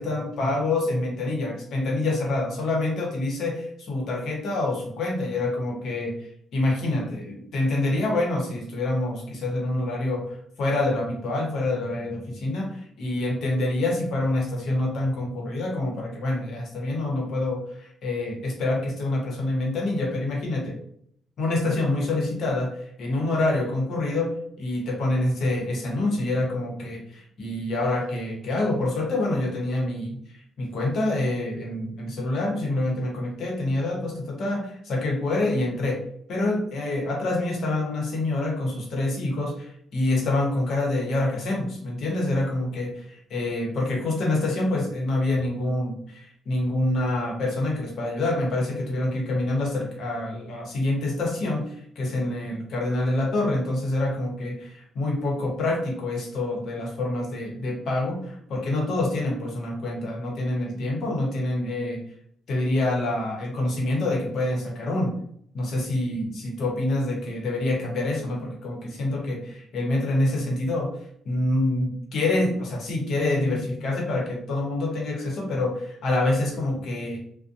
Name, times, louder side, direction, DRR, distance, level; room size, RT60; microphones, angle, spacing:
voice 1, 0.0-20.8 21.4-36.0 36.3-62.0 62.5-65.1 65.5-70.9 71.2-77.2, left 2 dB, 65° left, -1 dB, 0.9 m, -26 dB
2.6 x 2.1 x 2.5 m, 0.65 s
cardioid pair, 120°, 0 cm